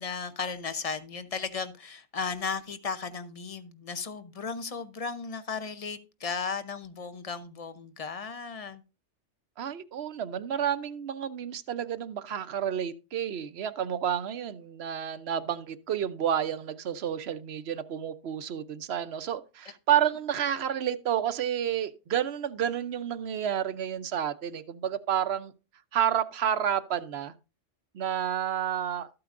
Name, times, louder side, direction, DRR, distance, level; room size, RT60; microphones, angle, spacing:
voice 1, 0.0-8.8, left 5 dB, 35° left, 0.8 m, -35 dB
voice 2, 9.6-25.5 25.9-27.3 27.9-29.1, right 9 dB, 65° right, 0.9 m, -30 dB
13.0 x 8.7 x 2.5 m
omnidirectional pair, 1.2 m